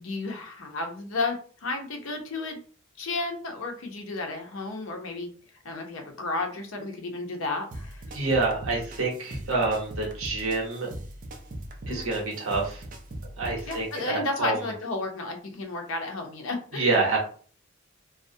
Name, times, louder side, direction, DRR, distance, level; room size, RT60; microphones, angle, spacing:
voice 1, 0.0-2.6 3.0-5.3 5.6-8.0 11.9-12.1 13.7-16.9, left 2 dB, 75° left, 3 dB, 0.6 m, -32 dB
sound 1, 7.7-14.1, right 1 dB, 40° right, 0.4 m, -40 dB
voice 2, 8.1-10.9 11.9-12.8 13.2-14.7 16.7-17.2, right 3 dB, 75° right, -2 dB, 0.8 m, -27 dB
2.4 x 2.0 x 2.6 m, 0.43 s
head